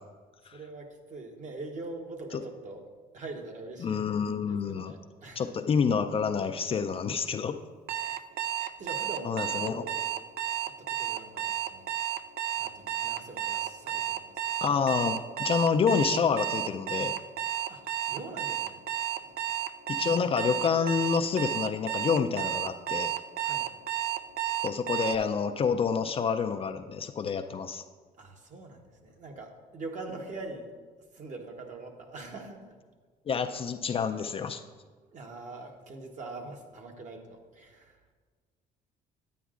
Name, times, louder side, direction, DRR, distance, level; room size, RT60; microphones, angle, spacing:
voice 1, 0.5-2.8 3.1-4.0 4.4-5.5 8.8-10.0 10.7-11.9 12.6-14.4 17.7-18.8 19.2-19.4 23.4-23.7 28.2-30.7 31.1-32.7 35.1-38.0, right 2 dB, 45° right, 3 dB, 1.1 m, -43 dB
voice 2, 3.8-4.9 5.4-7.5 9.2-9.8 14.6-17.1 19.9-23.1 24.6-27.8 33.3-34.6, left 6 dB, 35° left, 6 dB, 0.4 m, -28 dB
Alarm, 7.9-25.2, right 11 dB, 80° right, 0.4 m, -32 dB
9.3 x 9.1 x 2.5 m, 1.5 s
cardioid pair, 110°, 17 cm